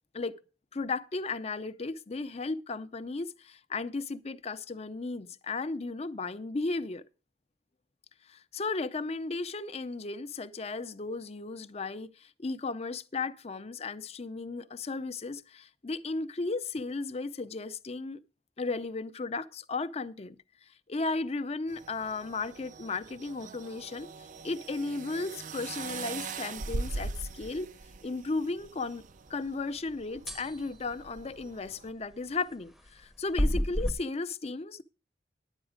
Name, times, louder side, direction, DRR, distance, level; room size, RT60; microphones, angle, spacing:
voice 1, 0.7-7.0 8.3-18.2 18.6-20.4 20.9-24.1 24.4-27.7 28.0-29.0 29.3-34.8, left 3 dB, 35° left, 0.6 m, -35 dB
sound 1, 21.7-31.9, right 3 dB, 45° right, 0.4 m, -42 dB
sound 2, 30.3-30.6 33.4-33.9, equal, ahead, 0.7 m, -28 dB
11.0 x 9.0 x 5.0 m
head